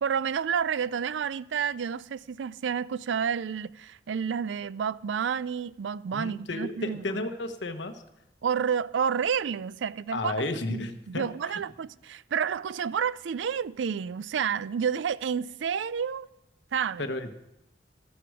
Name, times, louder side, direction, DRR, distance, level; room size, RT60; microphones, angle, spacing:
voice 1, 0.0-7.2 8.4-16.3 16.7-17.1, right 7 dB, 90° right, 0.4 m, -30 dB
voice 2, 6.1-8.0 10.1-11.6 17.0-17.3, left 2 dB, 80° left, 1.1 m, -33 dB
13.5 x 12.5 x 4.8 m
head